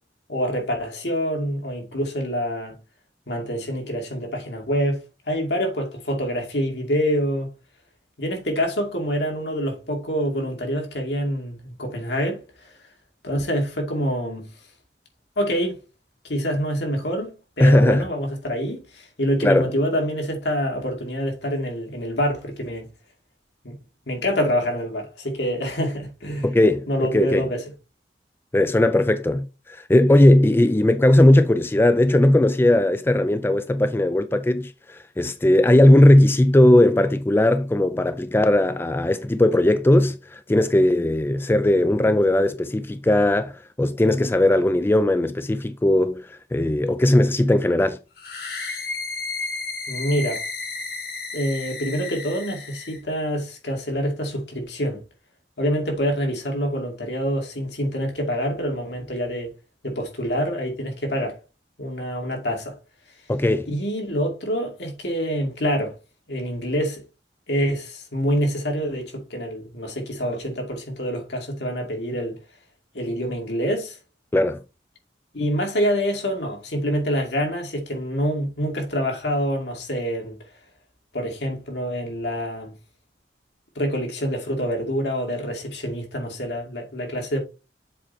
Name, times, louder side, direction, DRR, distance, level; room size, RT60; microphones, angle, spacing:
voice 1, 0.3-2.8 3.3-7.5 8.2-12.7 13.2-14.5 15.4-15.8 16.2-22.9 23.6-23.8 24.1-26.5 26.9-27.6 49.9-50.4 51.3-55.0 55.6-59.5 59.8-61.4 61.8-62.8 63.7-66.0 66.3-67.0 67.5-72.4 72.9-74.0 75.3-80.4 81.1-82.7 83.8-87.4, equal, 75° left, 2.5 m, -26 dB
voice 2, 17.6-18.1 19.4-19.7 26.4-27.5 28.5-48.0 63.3-63.7 74.3-74.6, left 1 dB, 15° left, 0.3 m, -18 dB
sound 1, 48.2-53.0, left 3 dB, 60° left, 1.8 m, -32 dB
7.4 x 4.3 x 4.3 m
head